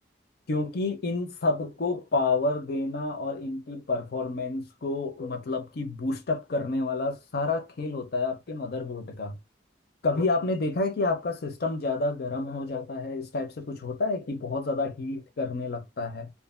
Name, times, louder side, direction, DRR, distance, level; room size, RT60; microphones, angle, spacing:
voice 1, 0.5-9.4 10.0-16.3, left 3 dB, 60° left, 0.6 m, -29 dB
2.5 x 2.4 x 2.4 m
head